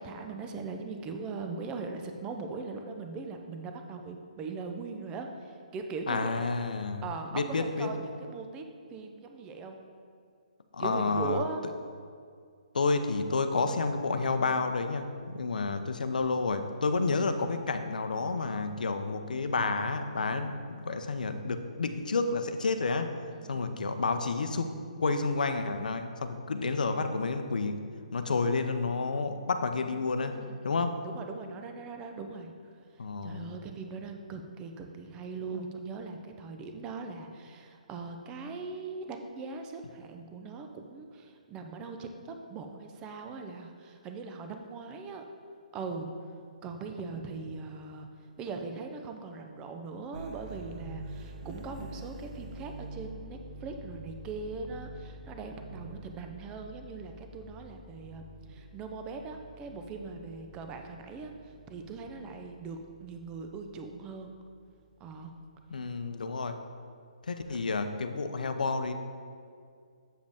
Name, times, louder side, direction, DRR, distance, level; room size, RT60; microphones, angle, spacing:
voice 1, 0.0-6.6 7.0-8.7 8.9-9.8 10.8-11.6 15.5-15.8 23.3-23.7 30.3-32.5 33.2-45.2 45.7-46.1 46.6-48.1 48.4-58.2 58.5-61.3 61.7-64.3 65.0-65.3, right 4 dB, 20° right, 4 dB, 0.5 m, -40 dB
voice 2, 6.1-7.0 7.3-7.9 10.7-11.4 12.7-23.1 23.5-24.7 25.0-27.8 28.1-30.4 30.6-31.0 33.0-33.6 65.7-66.6 67.3-68.9, left 4 dB, 85° left, 8 dB, 0.5 m, -30 dB
sound 1, 50.1-65.3, right 1 dB, 60° right, 0.6 m, -47 dB
7.8 x 5.1 x 3.5 m, 2.2 s
hypercardioid pair, 150°, 4 cm